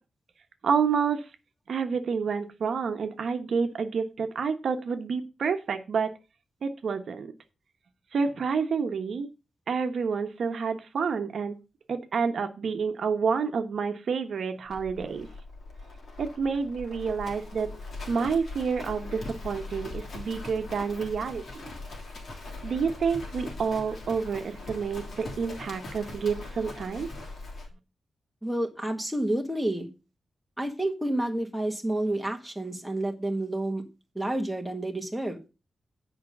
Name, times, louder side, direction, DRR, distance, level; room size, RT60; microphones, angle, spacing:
voice 1, 0.6-1.2 1.7-6.1 6.6-7.3 8.1-9.3 9.7-11.6 11.9-15.3 16.2-17.7 18.1-21.7 22.6-27.1, right 5 dB, 60° right, 6 dB, 1.1 m, -29 dB
Livestock farm animals working animals, 14.7-27.7, left 2 dB, 55° left, 3.1 m, -41 dB
voice 2, 28.4-29.9 30.6-33.8 34.1-35.4, right 1 dB, ahead, 2 dB, 1.6 m, -29 dB
9.6 x 5.2 x 6.6 m, 0.29 s
wide cardioid pair, 165°, 0 cm